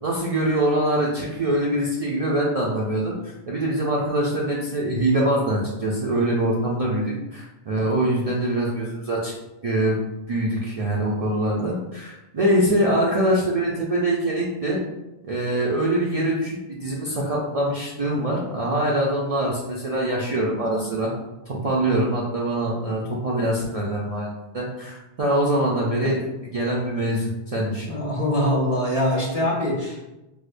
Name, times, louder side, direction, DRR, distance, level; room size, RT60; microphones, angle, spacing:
voice 1, 0.0-9.3 9.6-10.0 10.3-14.8 15.2-21.1 21.5-27.9, right 1 dB, 50° right, -4 dB, 0.5 m, -24 dB
voice 2, 27.9-30.0, left 1 dB, 40° left, -3 dB, 0.8 m, -23 dB
4.8 x 2.0 x 2.5 m, 0.99 s
omnidirectional pair, 1.0 m